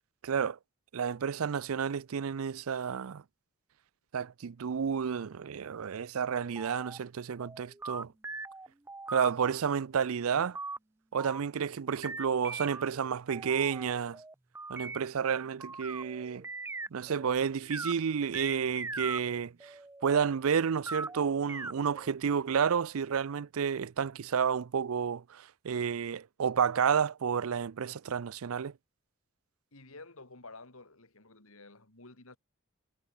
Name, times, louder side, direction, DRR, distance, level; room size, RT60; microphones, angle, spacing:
voice 1, 0.2-0.6 0.9-3.2 4.1-8.1 9.1-10.6 11.1-14.2 14.7-16.5 16.9-19.7 20.0-28.7, right 7 dB, 75° right, 0.5 m, -31 dB
sound 1, 6.3-7.0 7.4-9.3 10.5-10.8 11.2-11.8 12.0-17.3 17.6-17.9 18.3-20.2 20.8-22.1, right 3 dB, 10° right, 0.4 m, -41 dB
voice 2, 29.7-32.4, left 3 dB, 75° left, 3.4 m, -51 dB
head